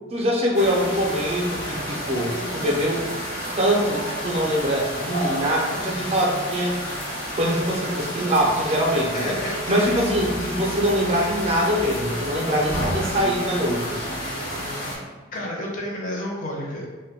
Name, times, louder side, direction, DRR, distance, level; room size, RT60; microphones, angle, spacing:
voice 1, 0.1-3.1 3.6-6.8 7.3-9.4 9.7-14.0, equal, 30° right, -2 dB, 0.4 m, -23 dB
sound 1, 0.5-15.0, equal, 90° left, 0.8 m, -30 dB
voice 2, 9.1-10.2 15.3-16.9, left 1 dB, 40° left, -2 dB, 0.6 m, -31 dB
2.2 x 2.2 x 3.5 m, 1.3 s
head